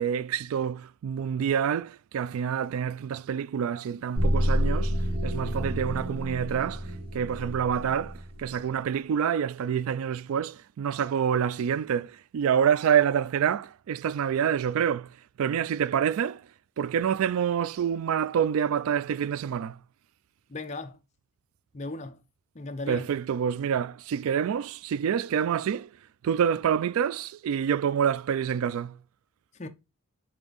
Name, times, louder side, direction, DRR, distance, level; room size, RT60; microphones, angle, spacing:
voice 1, 0.0-4.9 5.2-6.9 7.1-15.1 15.4-16.4 16.8-19.8 22.9-25.9 26.2-29.0, right 8 dB, 75° right, 0.3 m, -27 dB
sound 1, 4.1-8.4, equal, 25° right, 1.6 m, -29 dB
voice 2, 20.5-21.0 21.7-22.2 22.5-23.1 29.6-29.7, left 2 dB, 30° left, 0.6 m, -36 dB
7.2 x 3.5 x 3.9 m
head